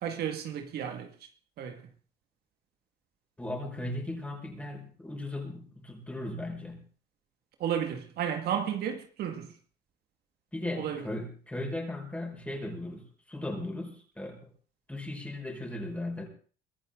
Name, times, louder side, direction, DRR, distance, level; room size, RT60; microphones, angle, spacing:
voice 1, 0.0-1.1 1.6-1.8 7.6-9.5 10.8-11.0, right 9 dB, 70° right, 2.0 m, -32 dB
voice 2, 3.4-6.8 10.5-14.5 14.9-16.3, left 1 dB, 10° left, 5.3 m, -37 dB
23.5 x 13.5 x 3.9 m
cardioid pair, 110°, 17 cm